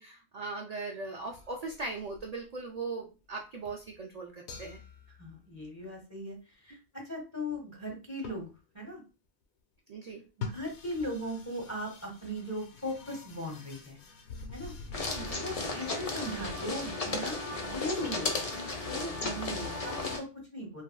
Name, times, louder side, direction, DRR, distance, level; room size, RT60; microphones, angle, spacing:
voice 1, 0.0-4.8 9.9-10.2 15.2-15.4, right 3 dB, 55° right, 1 dB, 0.5 m, -39 dB
sound 1, 1.2-2.8 3.3-3.4 3.6-4.0 4.5-5.8 7.9-8.0 8.2-8.6 10.3-15.4, left 5 dB, 85° left, 0.9 m, -46 dB
voice 2, 5.2-8.5 8.7-9.0 10.4-14.0 14.5-14.7 15.0-20.8, equal, 15° left, 0 dB, 0.9 m, -38 dB
sound 2, 14.9-20.2, left 3 dB, 45° left, 0.6 m, -34 dB
3.2 x 2.5 x 2.2 m, 0.31 s
omnidirectional pair, 1.1 m